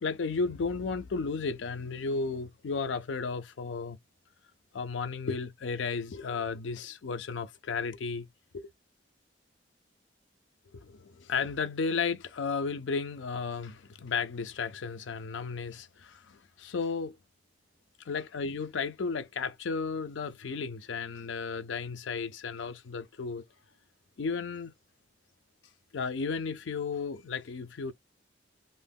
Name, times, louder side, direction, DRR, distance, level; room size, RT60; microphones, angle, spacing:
voice 1, 0.0-4.0 4.7-8.3 8.5-8.7 10.7-17.2 18.1-23.4 24.2-24.7 25.9-27.9, left 4 dB, 85° left, 0.5 m, -34 dB
2.7 x 2.1 x 3.4 m
head